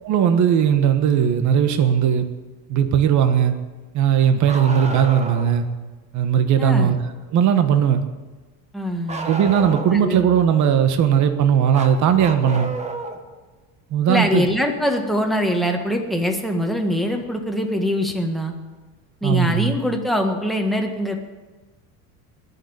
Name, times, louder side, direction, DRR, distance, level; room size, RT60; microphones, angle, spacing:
voice 1, 0.0-2.3 2.7-3.5 3.9-5.7 6.1-7.0 7.3-8.0 9.3-12.7 13.9-14.5 19.2-19.7, right 8 dB, 40° right, 8 dB, 1.4 m, -18 dB
Bark, 4.4-5.5 9.1-10.1 11.7-13.2 14.9-15.0 16.9-17.0 18.1-18.2, right 2 dB, 15° right, 1.4 m, -31 dB
voice 2, 6.6-6.9 8.7-9.3 10.0-10.2 14.1-18.5 19.2-21.2, left 1 dB, ahead, 2 dB, 1.6 m, -23 dB
20.5 x 7.0 x 9.6 m, 1.3 s
cardioid pair, 150°, 42 cm